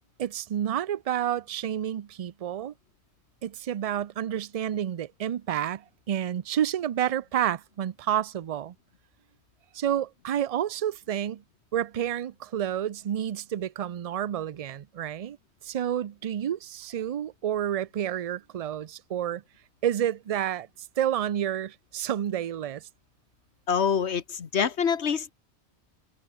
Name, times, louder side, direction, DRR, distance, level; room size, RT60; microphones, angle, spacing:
voice 1, 0.2-2.7 3.4-8.7 9.7-11.4 11.7-15.4 15.6-19.4 19.8-20.7 21.0-22.8, right 10 dB, 50° right, 0.4 m, -29 dB
voice 2, 23.7-25.3, left 7 dB, 80° left, 1.5 m, -26 dB
omnidirectional pair, 1.1 m